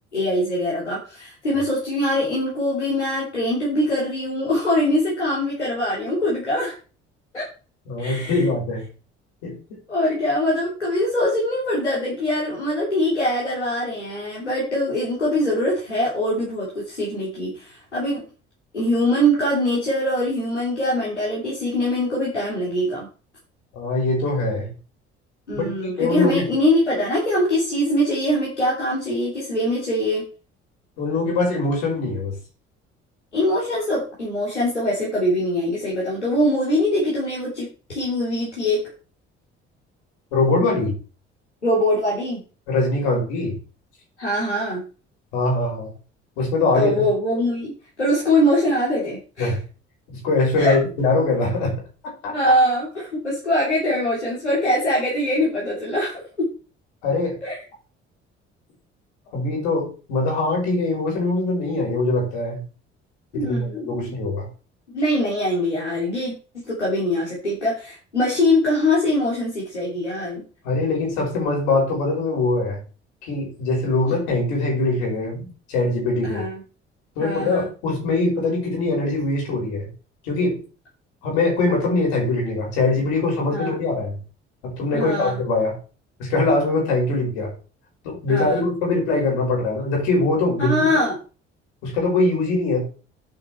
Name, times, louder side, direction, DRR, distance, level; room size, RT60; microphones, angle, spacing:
voice 1, 0.1-6.8 7.3-7.4 8.0-8.4 9.9-18.2 18.7-23.1 25.5-30.2 33.3-38.8 41.6-42.4 44.2-44.8 46.7-47.7 48.0-49.6 50.6-50.8 52.3-56.5 57.4-57.6 63.3-64.1 64.9-66.3 66.7-70.4 76.2-76.6 77.2-77.7 83.5-83.8 84.9-85.4 88.3-88.6 90.6-91.2, left 1 dB, 85° left, -6 dB, 3.2 m, -23 dB
voice 2, 7.9-8.9 9.4-9.5 23.7-24.7 25.5-26.5 31.0-32.4 40.3-40.9 42.7-43.6 45.3-45.9 46.4-46.9 49.4-49.6 50.2-51.7 52.2-52.3 57.0-57.4 59.3-62.6 63.3-64.5 70.6-72.8 73.2-76.4 77.2-79.9 80.2-80.6 81.2-84.2 84.6-85.8 86.2-87.5 88.0-90.9 91.8-92.8, left 2 dB, 65° left, -1 dB, 5.6 m, -22 dB
10.5 x 6.7 x 4.5 m, 0.36 s
figure-of-eight pair, 50°, 34 cm